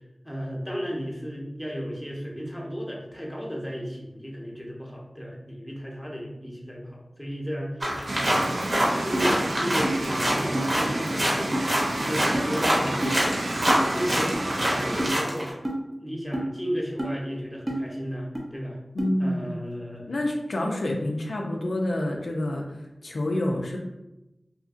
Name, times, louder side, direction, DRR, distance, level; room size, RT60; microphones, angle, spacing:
voice 1, 0.2-8.5 9.0-13.3 13.9-14.3 14.6-15.5 16.0-18.8 19.2-20.2, equal, 5° left, -2 dB, 0.7 m, -34 dB
sound 1, 7.8-15.5, equal, 50° right, 0.9 m, -26 dB
sound 2, 8.1-15.1, right 1 dB, 85° right, 0.3 m, -31 dB
sound 3, 9.1-9.3 9.8-10.0 10.5-10.7 11.5-11.6 12.3-12.5 13.0-13.2 13.7-13.8 14.3-14.4 15.0-15.1 15.6-15.8 16.3-16.5 17.0-17.1 17.7-17.8 18.3-18.4 19.0-19.1, right 1 dB, 30° right, 0.6 m, -28 dB
voice 2, 19.0-19.5 20.1-23.8, left 1 dB, 85° left, 0 dB, 0.3 m, -28 dB
2.7 x 2.5 x 2.4 m, 0.95 s
cardioid pair, 40°, 0 cm